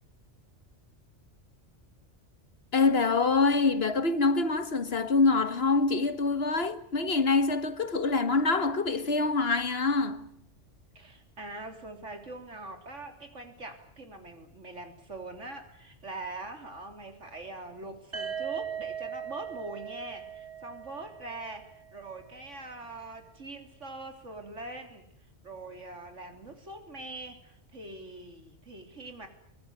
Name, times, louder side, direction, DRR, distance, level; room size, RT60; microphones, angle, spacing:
voice 1, 2.7-10.4, left 3 dB, 55° left, 1.7 m, -25 dB
voice 2, 11.0-25.1 25.4-29.3, right 2 dB, 90° right, 3.8 m, -43 dB
sound 1, 18.1-22.0, right 8 dB, 50° right, 4.3 m, -39 dB
23.5 x 21.0 x 9.6 m
omnidirectional pair, 1.2 m